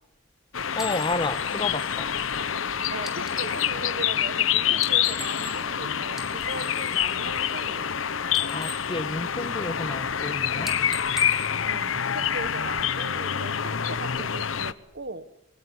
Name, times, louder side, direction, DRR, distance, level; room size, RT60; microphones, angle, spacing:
sound 1, 0.5-14.7, left 8 dB, 90° left, 0.9 m, -27 dB
voice 1, 0.7-2.1 2.6-2.7 8.5-10.8, left 2 dB, 25° left, 13 dB, 1.3 m, -31 dB
sound 2, 0.8-3.8 4.7-5.8 6.1-8.0 8.2-9.8 10.1-10.3 10.6-12.5, left 1 dB, ahead, 3.3 m, -41 dB
voice 2, 2.9-7.9 11.6-15.3, right 2 dB, 60° right, 14 dB, 1.4 m, -39 dB
24.0 x 19.0 x 9.7 m, 0.82 s
head